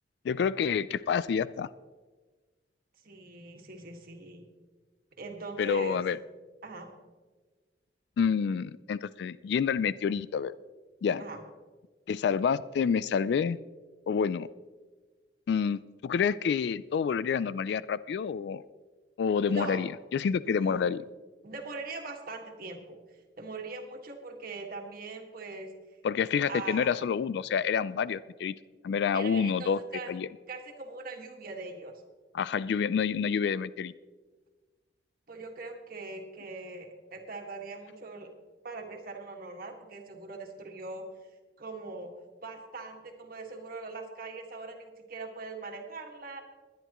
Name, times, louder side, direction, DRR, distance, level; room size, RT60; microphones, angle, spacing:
voice 1, 0.2-1.7 5.6-6.2 8.2-10.5 11.0-11.2 12.1-13.6 14.1-14.5 15.5-18.6 19.2-21.0 26.0-28.5 28.8-29.8 30.1-30.3 32.3-33.9, left 6 dB, 70° left, 17 dB, 0.3 m, -28 dB
voice 2, 3.0-4.5 5.2-6.0 6.6-6.9 11.2-11.4 19.5-19.8 20.4-20.9 21.4-25.7 26.5-27.1 29.1-30.2 30.5-31.9 35.3-38.3 38.6-41.1 41.6-42.1 42.4-46.4, right 3 dB, 55° right, 2 dB, 1.8 m, -41 dB
20.5 x 10.5 x 3.0 m, 1.4 s
head